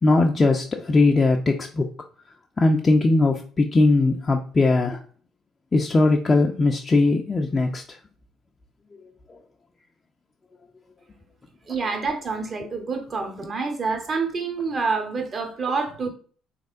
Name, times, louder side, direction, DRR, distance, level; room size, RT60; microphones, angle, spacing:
voice 1, 0.0-1.9 2.6-5.0 5.7-7.8, left 3 dB, 30° left, 0.4 m, -19 dB
voice 2, 11.7-16.1, right 4 dB, 40° right, 0.9 m, -27 dB
3.4 x 3.2 x 2.5 m
hypercardioid pair, 50°, 0 cm